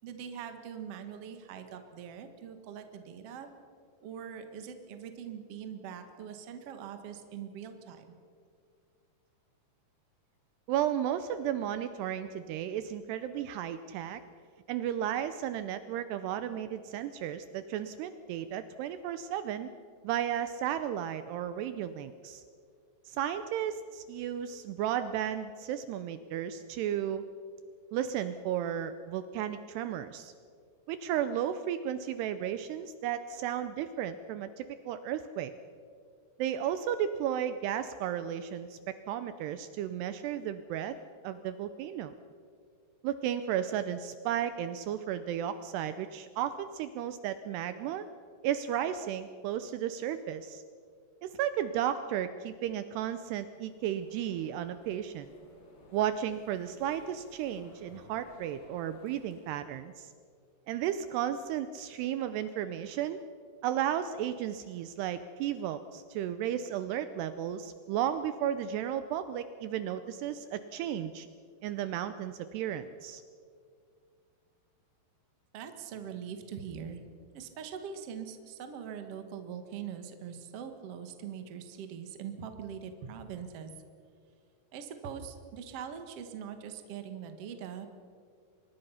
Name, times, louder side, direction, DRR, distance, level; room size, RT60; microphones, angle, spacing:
voice 1, 0.0-3.5 4.0-8.1 75.5-77.0 77.3-83.7 84.7-87.9, right 7 dB, 60° right, 7 dB, 1.6 m, -42 dB
voice 2, 10.7-14.2 14.7-19.7 20.0-22.4 23.1-27.3 27.9-30.3 30.9-35.5 36.4-41.0 41.2-42.1 43.0-48.1 48.4-50.6 51.2-55.3 55.9-60.1 60.7-63.2 63.6-71.3 71.6-73.2, right 10 dB, 80° right, 11 dB, 2.5 m, -34 dB
sound 1, 53.5-59.6, left 1 dB, 60° left, 5.8 m, -58 dB
24.5 x 21.0 x 5.7 m, 2.3 s
omnidirectional pair, 5.2 m